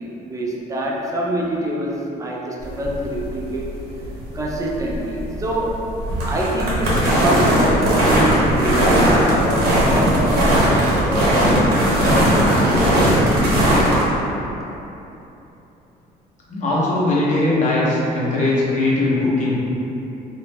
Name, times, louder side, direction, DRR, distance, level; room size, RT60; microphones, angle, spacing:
voice 1, 0.0-3.6 4.3-5.9 6.3-12.8, right 1 dB, 20° right, -4 dB, 0.4 m, -26 dB
sound 1, 2.6-14.0, equal, 75° right, 0.8 m, -17 dB
voice 2, 16.5-19.7, left 2 dB, 45° left, -6 dB, 0.7 m, -20 dB
2.4 x 2.0 x 3.3 m, 3.0 s
cardioid pair, 110°, 17 cm